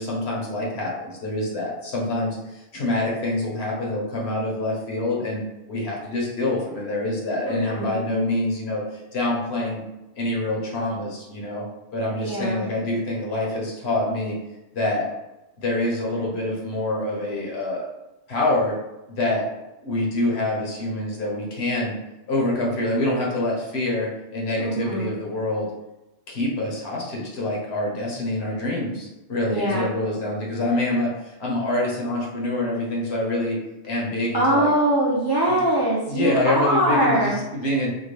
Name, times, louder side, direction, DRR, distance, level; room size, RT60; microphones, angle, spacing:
voice 1, 0.0-5.4 5.7-8.8 9.1-9.8 10.2-11.6 11.9-14.4 14.7-15.1 15.6-17.9 18.3-18.8 19.2-19.5 19.8-21.9 22.3-25.7 26.3-33.6 33.8-34.7 35.5-35.6 36.1-37.9, left 1 dB, 65° left, -2 dB, 1.2 m, -26 dB
voice 2, 7.4-8.0 12.2-12.6 24.6-25.1 29.5-29.9 34.3-37.4, right 1 dB, 25° right, -6 dB, 0.5 m, -22 dB
3.6 x 2.2 x 3.2 m, 0.97 s
omnidirectional pair, 1.2 m